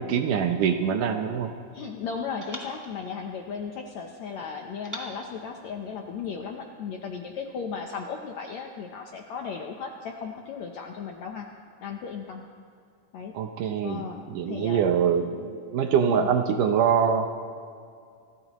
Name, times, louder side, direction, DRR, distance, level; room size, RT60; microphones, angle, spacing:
voice 1, 0.0-1.5 13.3-17.3, right 7 dB, 75° right, 6 dB, 2.1 m, -24 dB
sound 1, 0.6-1.8 2.4-4.0 4.8-6.4, equal, 30° right, 0.3 m, -46 dB
voice 2, 1.7-11.5 11.8-12.4 13.1-13.4 13.8-14.9 16.1-16.3, left 6 dB, 75° left, 2 dB, 1.7 m, -36 dB
26.0 x 17.0 x 3.1 m, 2.3 s
omnidirectional pair, 4.3 m